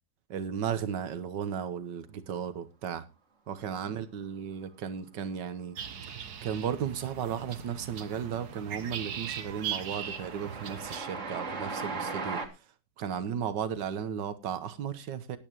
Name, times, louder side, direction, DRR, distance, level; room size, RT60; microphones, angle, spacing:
voice 1, 0.3-3.0 3.5-5.8 6.4-12.4 13.0-15.4, right 8 dB, 80° right, 1.8 m, -35 dB
sound 1, 5.8-11.0, right 8 dB, 65° right, 1.6 m, -39 dB
Train, 6.8-7.3 7.6-12.5, right 4 dB, 45° right, 2.1 m, -39 dB
18.5 x 8.9 x 3.0 m
omnidirectional pair, 1.9 m